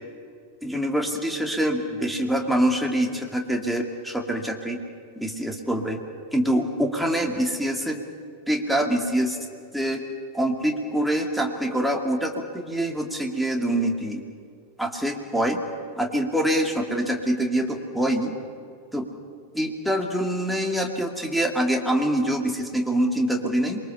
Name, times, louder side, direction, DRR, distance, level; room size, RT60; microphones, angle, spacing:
voice 1, 0.6-4.8 5.2-6.0 6.3-8.0 8.5-9.4 9.7-10.0 10.3-14.2 14.8-15.6 16.0-18.3 18.9-19.1 19.5-23.8, right 1 dB, ahead, 1 dB, 2.8 m, -25 dB
27.5 x 23.0 x 6.9 m, 2.2 s
figure-of-eight pair, 90°, 0 cm